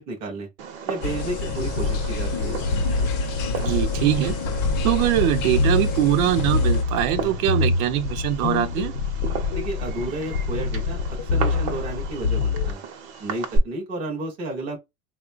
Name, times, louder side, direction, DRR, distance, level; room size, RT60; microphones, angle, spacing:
voice 1, 0.1-0.5 0.9-2.6 9.5-12.8 13.2-14.8, right 2 dB, 15° right, 0.4 m, -32 dB
Fireworks, 0.6-13.6, right 5 dB, 45° right, 0.7 m, -36 dB
sound 1, 1.0-6.8, left 3 dB, 40° left, 0.5 m, -29 dB
sound 2, 1.5-12.7, left 4 dB, 80° left, 0.8 m, -26 dB
voice 2, 3.6-4.4 4.8-8.9, right 12 dB, 80° right, 0.7 m, -22 dB
3.7 x 2.1 x 2.4 m
supercardioid pair, 180°, 42 cm